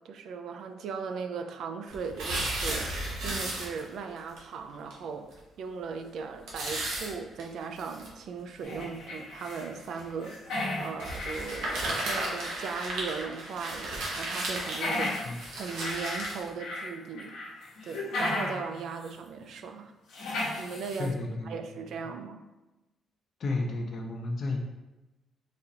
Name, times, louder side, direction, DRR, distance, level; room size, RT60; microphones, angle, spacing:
voice 1, 0.0-15.2 15.6-17.4 17.8-19.9 20.6-21.1 21.5-22.4, right 5 dB, 70° right, 6 dB, 0.3 m, -38 dB
sound 1, 1.9-4.0 4.4-4.5 4.9-5.0 5.3-5.4 6.5-8.1 8.7-8.8 9.8-10.0 11.0-16.4, right 1 dB, 85° right, 0.9 m, -34 dB
sound 2, 8.6-9.7 10.0-12.4 12.8-12.9 14.5-16.9 17.2-18.7 19.0-19.1 20.1-21.1, left 2 dB, 85° left, 1.1 m, -35 dB
voice 2, 21.0-21.6 23.4-24.6, left 2 dB, 55° left, 1 dB, 0.5 m, -32 dB
4.1 x 2.5 x 2.8 m, 1.0 s
cardioid pair, 90°, 0 cm